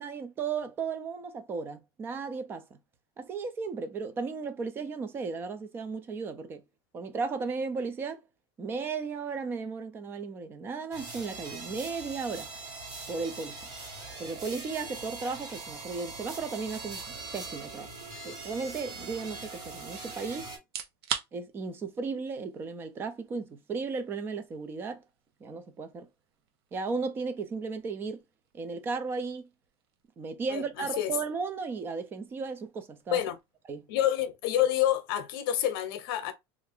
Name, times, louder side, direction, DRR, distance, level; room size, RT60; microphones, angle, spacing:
voice 1, 0.0-2.8 3.2-6.6 6.9-8.2 8.6-12.5 13.1-13.6 14.2-17.9 18.2-20.5 21.3-25.0 25.4-26.1 26.7-28.2 28.5-29.5 30.2-33.2 33.7-33.9, right 4 dB, 15° right, 0.4 m, -35 dB
sound 1, 10.9-20.6, right 3 dB, 30° right, 1.3 m, -42 dB
sound 2, 20.6-35.4, right 8 dB, 85° right, 0.7 m, -46 dB
voice 2, 30.5-31.1 33.1-33.4 33.9-36.3, left 12 dB, 65° left, 0.7 m, -28 dB
3.2 x 2.5 x 3.5 m
supercardioid pair, 170°, 13 cm